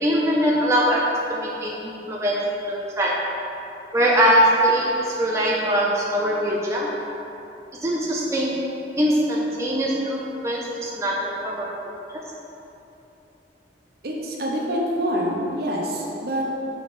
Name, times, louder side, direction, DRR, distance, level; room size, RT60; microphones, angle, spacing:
voice 1, 0.0-1.0 1.3-2.4 2.7-3.1 3.9-6.9 7.8-8.5 9.0-10.2 10.4-11.7, equal, 15° right, -4 dB, 0.5 m, -22 dB
voice 2, 14.0-16.5, equal, 60° right, -2 dB, 0.9 m, -26 dB
5.8 x 3.8 x 5.4 m, 2.9 s
head